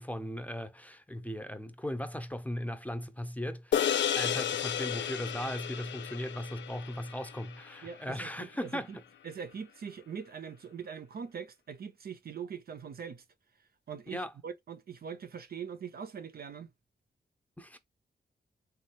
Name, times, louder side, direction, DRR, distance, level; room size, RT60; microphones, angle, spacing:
voice 1, 0.0-8.9 14.1-14.3 17.6-17.8, equal, 10° left, 0.6 m, -38 dB
sound 1, 3.7-8.3, left 9 dB, 90° left, 0.4 m, -33 dB
voice 2, 7.8-9.0 9.2-13.2 13.9-16.7, right 7 dB, 60° right, 0.5 m, -42 dB
3.3 x 2.3 x 2.9 m
cardioid pair, 60°, 18 cm